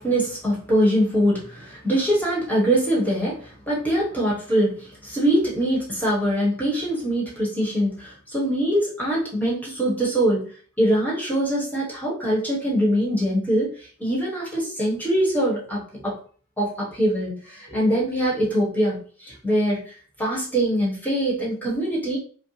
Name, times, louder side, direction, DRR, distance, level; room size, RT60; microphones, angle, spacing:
voice 1, 0.0-10.5 10.8-13.7 14.0-16.1 16.6-19.9 20.2-22.2, right 1 dB, 10° left, -5 dB, 1.1 m, -23 dB
5.1 x 2.1 x 3.2 m, 0.43 s
head